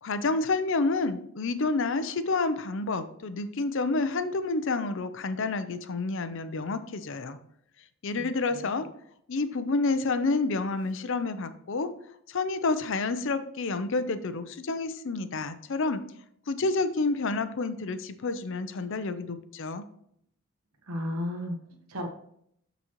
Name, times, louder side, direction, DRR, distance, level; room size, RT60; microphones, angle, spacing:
voice 1, 0.0-7.4 8.0-8.9 9.3-11.9 12.3-16.0 16.5-19.9, left 3 dB, 60° left, 11 dB, 0.6 m, -29 dB
voice 2, 8.1-8.8 20.8-21.6 21.9-22.1, left 1 dB, 85° right, 3 dB, 1.1 m, -34 dB
12.0 x 4.1 x 3.0 m, 0.70 s
head